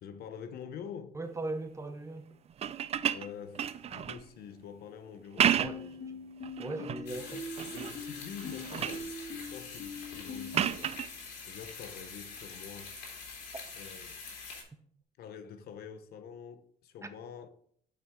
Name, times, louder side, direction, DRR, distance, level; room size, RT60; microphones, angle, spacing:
voice 1, 0.0-1.2 3.1-6.2 7.1-7.3 7.6-11.0 11.5-13.1 13.8-14.2 15.2-17.5, left 7 dB, 65° left, 0.8 m, -46 dB
voice 2, 1.1-2.3 5.6-5.8 6.6-7.5 17.0-17.1, right 2 dB, 15° right, 0.8 m, -38 dB
sound 1, 2.5-4.3 5.2-5.9 6.4-7.1 7.6-8.0 8.4-9.1 10.5-11.1 12.8-13.0, right 9 dB, 40° right, 0.4 m, -32 dB
sound 2, 5.6-10.7, left 3 dB, 45° left, 2.3 m, -43 dB
sound 3, 7.1-14.6, left 4 dB, 85° left, 3.2 m, -45 dB
8.4 x 5.9 x 3.7 m
cardioid pair, 110°, 17 cm